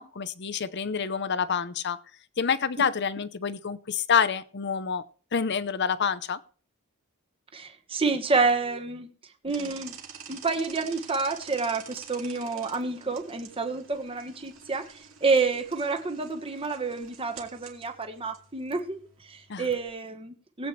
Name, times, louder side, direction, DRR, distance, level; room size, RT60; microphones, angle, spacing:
voice 1, 0.0-2.0 2.4-5.0 5.3-6.4 19.5-19.7, left 6 dB, 50° left, 15 dB, 0.7 m, -27 dB
voice 2, 7.5-9.1 9.4-9.9 10.3-20.7, right 4 dB, 25° right, 6 dB, 1.2 m, -29 dB
sound 1, 9.5-19.9, right 7 dB, 65° right, 2.4 m, -48 dB
19.5 x 8.2 x 3.2 m, 0.42 s
head